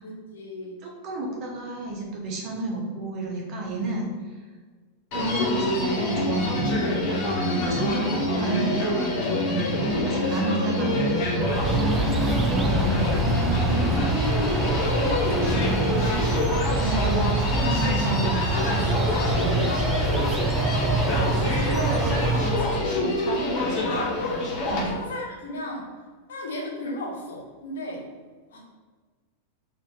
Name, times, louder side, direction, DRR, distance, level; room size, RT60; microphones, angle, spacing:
voice 1, 0.0-0.8 7.5-7.8 9.8-10.5 13.7-17.2 18.5-20.6 21.1-24.2 24.8-25.9 26.3-28.1 28.5-28.6, left 1 dB, 60° left, -2 dB, 1.1 m, -35 dB
voice 2, 0.8-4.4 5.1-7.1 7.6-9.2 10.0-11.5 12.5-13.1 16.7-18.4 18.8-18.9 24.7-25.0, right 2 dB, 40° right, -1 dB, 1.1 m, -31 dB
Human voice, 5.1-24.9, left 1 dB, 40° left, 1.2 m, -26 dB
sound 1, 11.4-22.8, right 2 dB, 20° right, 0.4 m, -25 dB
3.9 x 2.8 x 3.5 m, 1.4 s
figure-of-eight pair, 90°, 0 cm